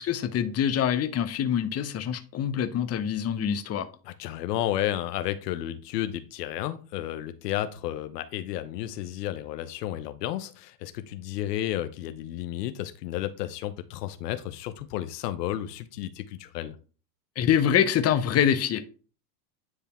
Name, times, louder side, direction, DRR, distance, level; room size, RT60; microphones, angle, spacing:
voice 1, 0.0-3.9 17.4-18.8, left 9 dB, 30° left, 1.0 m, -25 dB
voice 2, 4.0-16.8, left 13 dB, 80° left, 0.9 m, -32 dB
9.8 x 3.4 x 4.4 m
supercardioid pair, 110°, 48 cm